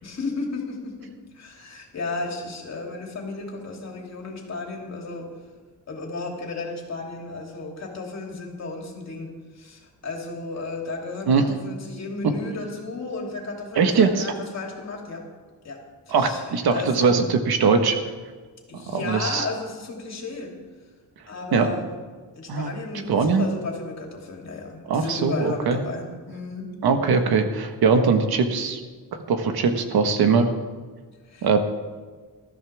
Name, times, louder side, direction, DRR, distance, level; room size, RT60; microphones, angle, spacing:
voice 1, 0.0-1.1 1.3-5.3 5.9-15.2 15.6-16.4 16.7-17.3 18.7-20.5 21.3-21.9 22.4-26.7 31.3-31.6, left 3 dB, 45° left, 0 dB, 3.2 m, -34 dB
voice 2, 13.7-14.3 16.1-18.0 18.9-19.5 21.5-21.7 22.5-22.7 23.1-23.5 24.9-25.8 26.8-28.8 29.1-30.5 31.4-31.6, right 5 dB, 80° right, 6 dB, 1.6 m, -21 dB
20.0 x 13.5 x 3.6 m, 1.5 s
wide cardioid pair, 140°, 37 cm